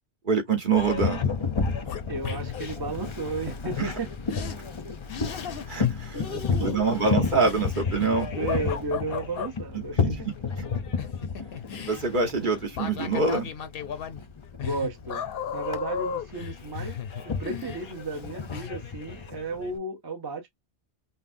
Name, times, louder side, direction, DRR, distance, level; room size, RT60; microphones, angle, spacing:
voice 1, 0.2-1.3 3.8-3.9 5.7-6.2 6.6-8.3 9.7-10.2 10.6-10.7 11.8-13.5, right 4 dB, 50° right, 1.3 m, -25 dB
Boat Water vehicle, 0.8-19.8, left 5 dB, 35° left, 0.5 m, -32 dB
sound 1, 1.6-2.7 3.9-4.0 4.3-4.6 5.1-5.9 6.1-9.5 10.6-18.2 18.5-18.7, left 7 dB, 65° left, 0.9 m, -36 dB
voice 2, 2.1-4.1 6.1-7.0 8.3-10.0 14.6-15.3 15.5-20.5, right 3 dB, 25° right, 0.7 m, -34 dB
5.5 x 2.1 x 2.5 m
omnidirectional pair, 1.1 m